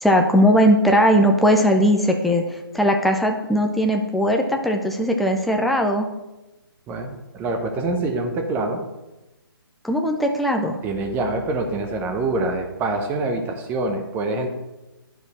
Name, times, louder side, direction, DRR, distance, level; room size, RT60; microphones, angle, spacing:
voice 1, 0.0-6.1 9.8-10.8, equal, ahead, 2 dB, 0.4 m, -19 dB
voice 2, 6.9-8.8 10.8-14.5, right 2 dB, 15° right, 5 dB, 0.9 m, -25 dB
11.5 x 4.7 x 4.2 m, 1.0 s
figure-of-eight pair, 145°, 12 cm